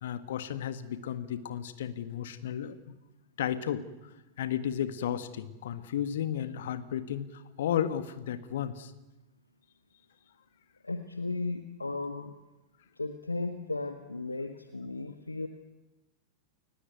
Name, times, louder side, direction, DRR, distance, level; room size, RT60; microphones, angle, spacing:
voice 1, 0.0-3.0 3.4-3.8 4.4-8.9, left 10 dB, 60° left, 12 dB, 1.7 m, -33 dB
voice 2, 10.8-12.3 13.0-15.5, left 3 dB, 80° left, 7 dB, 1.6 m, -35 dB
29.5 x 16.5 x 9.3 m, 1.1 s
figure-of-eight pair, 90°, 0 cm